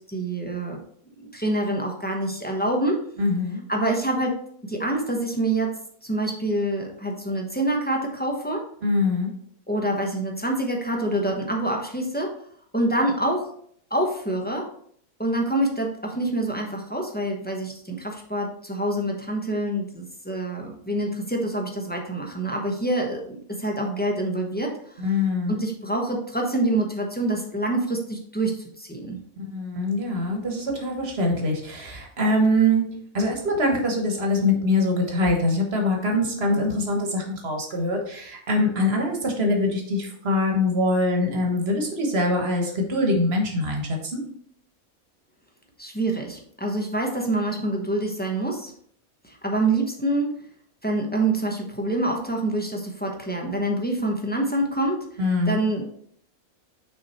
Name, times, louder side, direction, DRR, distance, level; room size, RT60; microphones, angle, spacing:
voice 1, 0.1-0.8 1.2-3.1 3.7-5.7 6.0-8.7 9.7-12.3 12.7-13.5 13.9-14.7 15.2-24.8 25.5-29.2 45.8-48.7 49.2-50.3 50.8-55.2 55.5-55.9, right 1 dB, 10° left, 0 dB, 0.9 m, -26 dB
voice 2, 3.2-3.6 8.8-9.3 25.0-25.6 29.4-32.8 33.1-44.2 55.2-55.6, left 1 dB, 45° right, 1 dB, 1.6 m, -23 dB
6.3 x 4.2 x 4.3 m, 0.63 s
omnidirectional pair, 1.5 m